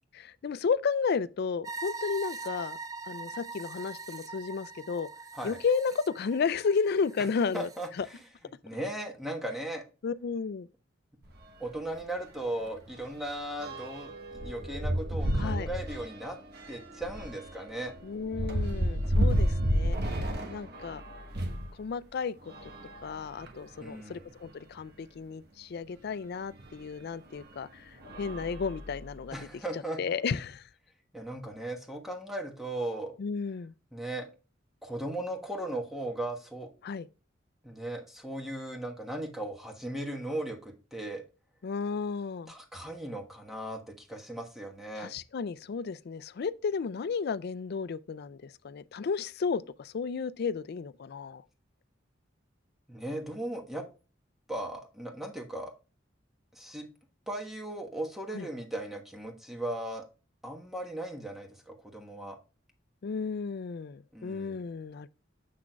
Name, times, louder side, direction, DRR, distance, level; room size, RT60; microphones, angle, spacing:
voice 1, 0.1-2.8 3.1-5.1 5.4-7.7 8.0-8.1 10.0-10.7 15.4-15.7 18.0-20.2 20.5-21.0 21.8-22.5 23.0-29.4 29.7-30.6 33.2-33.7 36.8-37.1 41.6-42.5 45.0-51.4 58.3-58.5 63.0-65.1, left 5 dB, 55° left, 0.4 m, -33 dB
sound 1, 1.6-7.9, right 4 dB, 20° right, 0.4 m, -42 dB
voice 2, 7.5-8.2 8.6-9.8 11.6-16.4 16.7-17.9 23.8-24.3 29.3-30.0 31.1-33.1 33.9-34.3 34.8-36.7 37.6-41.2 42.5-45.1 52.9-53.9 54.5-55.7 56.5-56.9 57.3-60.0 60.4-62.4 64.1-64.6, right 1 dB, ahead, 1.3 m, -37 dB
sound 2, 11.2-11.4 11.8-12.0 12.2-21.7 22.4-23.8 24.5-24.6 24.8-24.9 26.6-26.7 27.3-27.6 28.0-29.3, equal, 55° right, 1.1 m, -32 dB
7.5 x 6.1 x 2.3 m
head